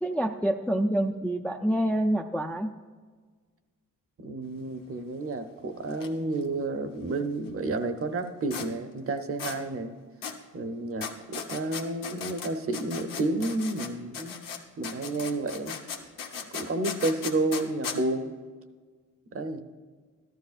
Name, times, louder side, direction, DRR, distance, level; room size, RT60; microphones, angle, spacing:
voice 1, 0.0-2.7, right 1 dB, 5° left, 5 dB, 0.4 m, -27 dB
voice 2, 4.2-9.9 10.5-14.4 14.8-15.8 16.5-18.4 19.3-19.6, right 2 dB, 45° right, 8 dB, 0.8 m, -30 dB
sound 1, 5.9-6.1 6.3-6.4 8.5-8.7 9.4-9.6 10.2-10.4 11.0-13.9 14.1-18.0, left 7 dB, 90° left, 1.1 m, -37 dB
13.5 x 12.0 x 2.5 m, 1.5 s
cardioid pair, 110°, 32 cm